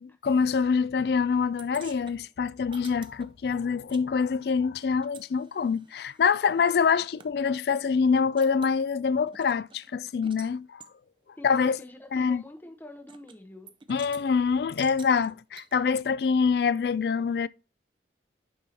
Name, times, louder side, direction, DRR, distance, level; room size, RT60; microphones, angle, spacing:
voice 1, 0.2-10.8 11.4-11.8 12.1-12.4 13.9-17.5, left 5 dB, 60° left, 0.3 m, -25 dB
sound 1, 1.6-4.1 4.3-7.3 7.8-7.9 8.1-8.8 9.3-10.5 10.8-10.9 11.7-11.8 13.1-13.4 13.7-14.2 14.8-15.8, right 6 dB, 25° right, 0.5 m, -51 dB
voice 2, 11.4-14.0, left 1 dB, 10° left, 0.7 m, -47 dB
8.5 x 5.4 x 2.8 m
head